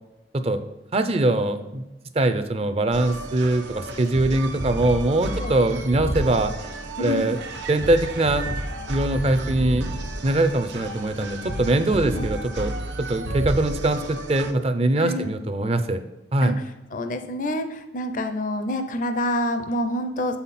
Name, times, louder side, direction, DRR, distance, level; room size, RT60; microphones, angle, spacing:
voice 1, 0.9-1.8 2.1-6.5 7.0-7.4 7.7-8.5 8.9-9.9 10.2-16.0 16.3-16.5, right 2 dB, 35° right, 9 dB, 0.5 m, -22 dB
sound 1, 2.9-14.5, right 1 dB, 90° right, 0.9 m, -32 dB
sound 2, 6.6-6.9 7.4-9.1 9.7-9.9 10.3-10.5, right 5 dB, 65° right, 1.3 m, -39 dB
voice 2, 7.0-7.3 12.0-12.2 15.0-15.3 16.4-16.5 16.9-20.4, left 1 dB, 50° left, 8 dB, 0.6 m, -27 dB
7.7 x 5.7 x 4.2 m, 1.0 s
head